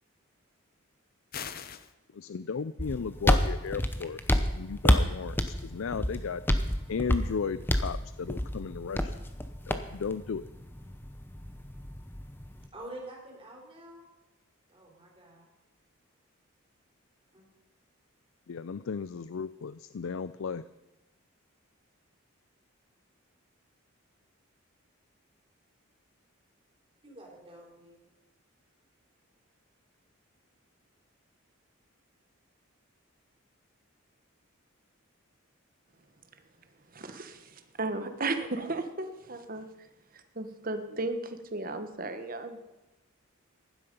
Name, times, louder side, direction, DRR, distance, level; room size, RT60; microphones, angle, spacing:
sound 1, 1.3-1.9, left 7 dB, 45° left, 0.7 m, -39 dB
voice 1, 2.1-4.2 4.5-6.4 6.9-9.2 9.7-10.5 18.5-20.6, left 6 dB, 70° left, 15 dB, 0.4 m, -35 dB
sound 2, 2.8-12.7, left 1 dB, 10° left, 0.8 m, -29 dB
voice 2, 12.7-14.0 14.7-15.4 17.3-17.4 27.0-28.0, right 1 dB, 25° right, -1 dB, 3.7 m, -47 dB
voice 3, 36.9-39.7 40.1-42.6, right 2 dB, 40° right, 8 dB, 1.2 m, -35 dB
16.0 x 11.5 x 5.3 m, 1.0 s
head